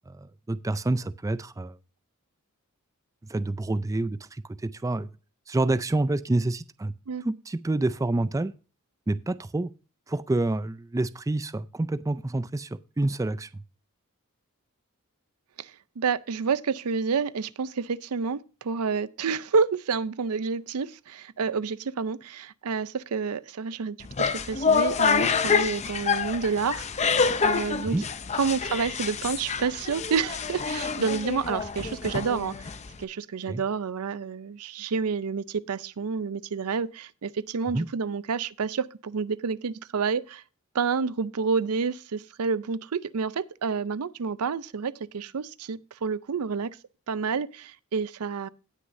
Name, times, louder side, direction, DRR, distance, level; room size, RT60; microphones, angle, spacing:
voice 1, 0.1-1.8 3.3-5.1 5.5-6.9 7.2-8.5 9.1-9.7 10.1-13.6 27.8-28.0 33.5-33.6 37.7-37.9, right 2 dB, 15° right, 0.3 m, -28 dB
voice 2, 16.0-24.1 24.3-28.0 28.3-32.7 33.0-40.4 40.7-46.7 47.1-48.5, right 5 dB, 85° right, 0.5 m, -29 dB
sound 1, 24.0-33.0, left 5 dB, 30° left, 0.6 m, -27 dB
17.5 x 6.4 x 2.6 m
head